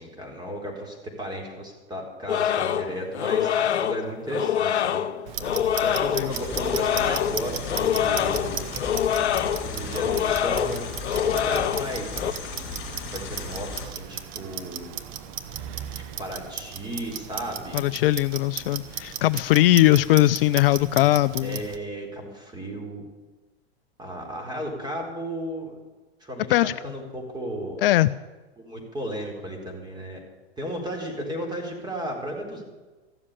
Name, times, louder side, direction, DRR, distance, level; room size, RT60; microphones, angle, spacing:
voice 1, 0.0-5.0 5.7-8.7 9.6-12.6 13.1-14.9 15.9-17.8 21.4-23.0 24.0-25.8 26.2-27.8 28.6-30.2 30.6-32.6, equal, 15° right, 1 dB, 4.2 m, -34 dB
sound 1, 2.3-12.3, left 9 dB, 80° left, 0.8 m, -25 dB
Clock, 5.3-21.8, right 9 dB, 45° right, 1.3 m, -36 dB
sound 2, 6.3-13.9, left 4 dB, 30° left, 4.8 m, -36 dB
voice 2, 17.7-21.6 26.5-26.7 27.8-28.1, left 16 dB, 60° left, 15 dB, 0.5 m, -20 dB
14.5 x 7.4 x 9.9 m, 1.2 s
hypercardioid pair, 110°, 33 cm